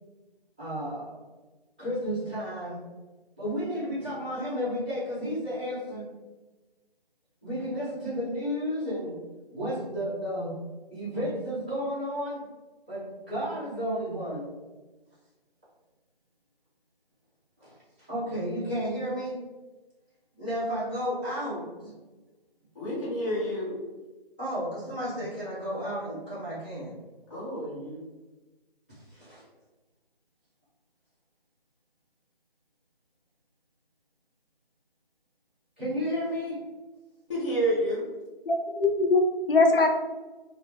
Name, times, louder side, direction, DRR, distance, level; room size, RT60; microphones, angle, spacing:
voice 1, 0.6-1.2 1.8-2.8 3.4-6.1 7.4-9.1 9.5-10.5 10.9-12.4 12.9-14.5 17.6-17.7 18.1-19.4 20.4-21.9 24.4-26.9 29.1-29.4 35.8-36.6, equal, 10° right, -15 dB, 0.6 m, -32 dB
voice 2, 22.8-23.8 27.3-28.0 37.3-38.1, right 1 dB, 35° left, -10 dB, 0.7 m, -29 dB
voice 3, 38.5-39.9, left 3 dB, 70° left, 4 dB, 0.5 m, -22 dB
2.2 x 2.0 x 3.3 m, 1.2 s
figure-of-eight pair, 160°, 30 cm